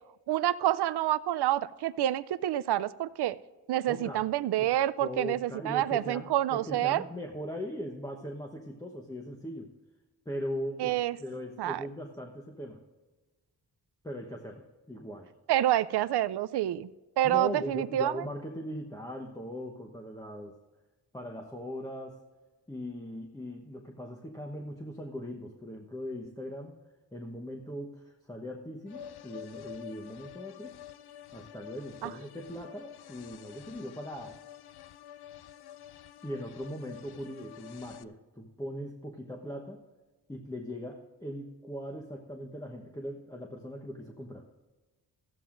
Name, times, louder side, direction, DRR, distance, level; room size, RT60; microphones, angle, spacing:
voice 1, 0.3-3.4 3.7-7.0 10.8-11.2 11.6-11.8 15.5-16.9 17.2-18.2 32.0-32.1, right 13 dB, 75° right, 17 dB, 0.5 m, -28 dB
voice 2, 3.9-4.2 4.6-4.7 5.0-9.7 10.2-12.8 14.0-15.3 17.2-20.5 21.1-22.2 22.7-26.8 27.1-30.8 31.3-34.4 36.2-39.8 40.3-44.5, equal, 10° left, 0 dB, 1.1 m, -40 dB
sound 1, 28.9-38.0, left 10 dB, 70° left, 0.6 m, -48 dB
15.0 x 13.0 x 2.6 m, 1.2 s
cardioid pair, 95°, 39 cm